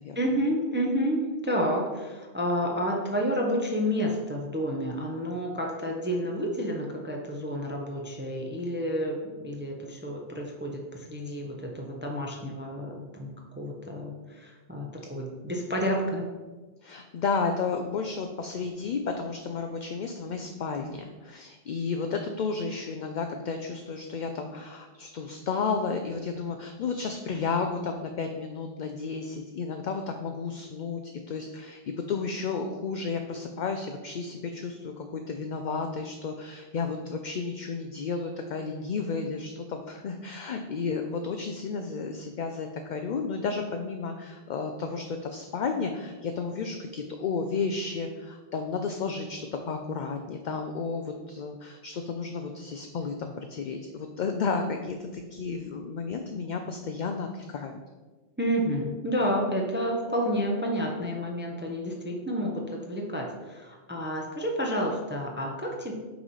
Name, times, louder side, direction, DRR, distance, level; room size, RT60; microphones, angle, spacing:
voice 1, 0.1-16.2 58.4-65.9, equal, 10° right, 0 dB, 0.7 m, -30 dB
voice 2, 16.8-31.8 32.1-57.8, left 4 dB, 55° left, 5 dB, 0.6 m, -32 dB
5.8 x 4.1 x 5.5 m, 1.3 s
omnidirectional pair, 1.1 m